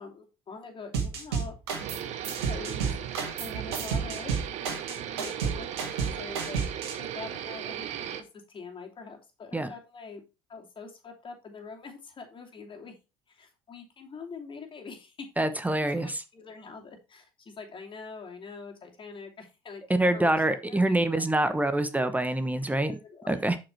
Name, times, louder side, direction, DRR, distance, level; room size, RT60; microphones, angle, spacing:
voice 1, 0.0-1.5 2.5-2.9 3.4-5.7 6.0-6.6 6.9-7.9 8.2-10.2 10.5-12.9 13.3-15.2 15.5-15.6 15.9-21.2 22.6-23.4, left 4 dB, 40° left, 2 dB, 2.8 m, -44 dB
sound 1, 0.9-6.9, right 6 dB, 90° right, 1.7 m, -31 dB
sound 2, 1.8-8.2, right 10 dB, 65° right, 1.0 m, -37 dB
voice 2, 15.4-16.2 20.0-23.0 23.3-23.6, right 1 dB, 10° right, 11 dB, 1.0 m, -25 dB
7.1 x 5.3 x 4.5 m, 0.28 s
hypercardioid pair, 65°, 13 cm